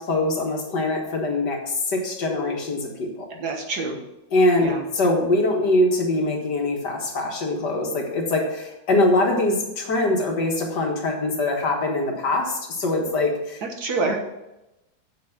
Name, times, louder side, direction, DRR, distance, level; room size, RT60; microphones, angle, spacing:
voice 1, 0.0-3.3 4.3-13.6, left 2 dB, 60° left, 1 dB, 2.1 m, -23 dB
voice 2, 3.4-4.0 4.6-4.8 13.6-14.2, right 3 dB, 55° right, 3 dB, 1.7 m, -26 dB
8.1 x 6.6 x 5.9 m, 0.93 s
omnidirectional pair, 2.2 m